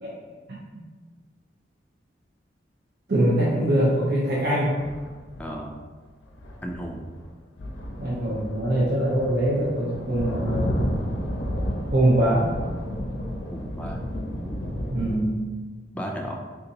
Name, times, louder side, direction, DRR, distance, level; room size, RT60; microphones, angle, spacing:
voice 1, 3.1-4.7 8.0-10.6 11.9-12.5 14.9-15.4, right 1 dB, 55° right, -7 dB, 0.6 m, -23 dB
sound 1, 4.8-5.6 6.2-7.3 7.6-15.2, equal, 90° left, 0.5 m, -32 dB
voice 2, 5.4-5.8 6.6-7.1 13.5-14.1 14.4-14.8 15.9-16.4, equal, 5° left, 0 dB, 0.3 m, -34 dB
3.6 x 2.8 x 2.7 m, 1.3 s
head